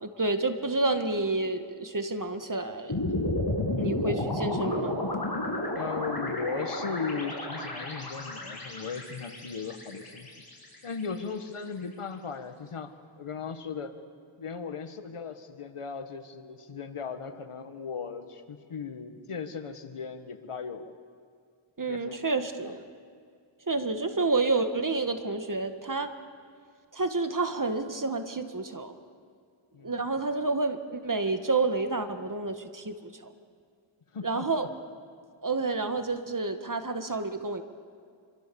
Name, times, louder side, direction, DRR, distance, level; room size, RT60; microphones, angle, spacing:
voice 1, 0.0-3.0 3.8-5.0 21.8-22.8 23.7-26.1 26.9-29.0 29.8-33.3 34.2-34.7 35.4-37.6, right 3 dB, 40° right, 8 dB, 1.9 m, -29 dB
sound 1, 2.9-11.2, left 1 dB, 45° left, 6.9 m, -32 dB
voice 2, 5.7-10.3 10.8-14.0 14.4-20.9 21.9-22.3 22.6-22.7 29.7-30.0 34.1-34.5, left 5 dB, 85° left, 8 dB, 1.7 m, -37 dB
26.5 x 24.5 x 7.1 m, 2.2 s
wide cardioid pair, 60°, 50 cm